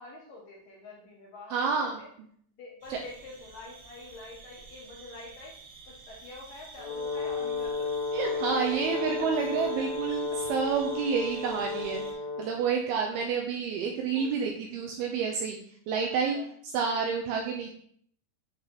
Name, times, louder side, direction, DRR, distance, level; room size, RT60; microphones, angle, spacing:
voice 1, 0.0-2.1 2.6-5.5 5.9-7.9 8.4-8.6 8.9-10.1 14.1-14.3 16.0-16.5, left 2 dB, 70° left, -3 dB, 2.2 m, -47 dB
voice 2, 1.5-2.0 2.9-3.0 8.1-12.0 12.4-16.4 16.6-17.7, right 6 dB, 85° right, 2 dB, 2.2 m, -29 dB
sound 1, 2.8-12.1, right 4 dB, 70° right, 2.7 m, -49 dB
Brass instrument, 6.8-12.8, left 3 dB, 45° left, 2.6 m, -33 dB
8.6 x 3.8 x 2.9 m, 0.62 s
omnidirectional pair, 4.9 m